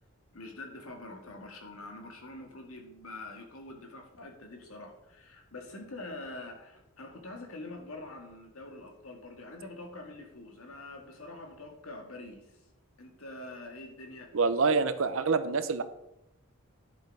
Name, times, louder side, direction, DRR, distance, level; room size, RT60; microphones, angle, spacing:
voice 1, 0.3-12.6 13.0-14.3, left 2 dB, 80° left, 2 dB, 2.0 m, -45 dB
voice 2, 14.3-15.8, right 4 dB, 65° right, 11 dB, 0.7 m, -26 dB
10.5 x 6.5 x 4.8 m, 0.88 s
head